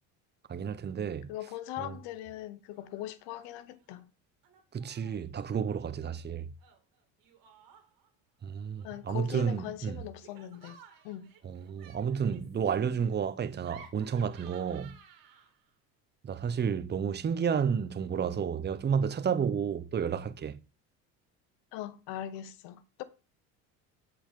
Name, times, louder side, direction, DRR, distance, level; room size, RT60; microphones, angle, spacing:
voice 1, 0.5-1.3 1.8-1.9 4.7-6.5 8.4-10.0 11.4-15.0 16.2-20.6, right 7 dB, 25° right, 0.8 m, -31 dB
voice 2, 1.3-4.1 8.8-11.3 21.7-23.0, left 13 dB, 75° left, 1.1 m, -40 dB
Laughter, 2.7-3.1 3.4-4.0 4.4-5.3 6.6-8.1 8.8-15.7, right 8 dB, 55° right, 2.5 m, -56 dB
8.3 x 7.8 x 3.8 m
supercardioid pair, 95°, 40 cm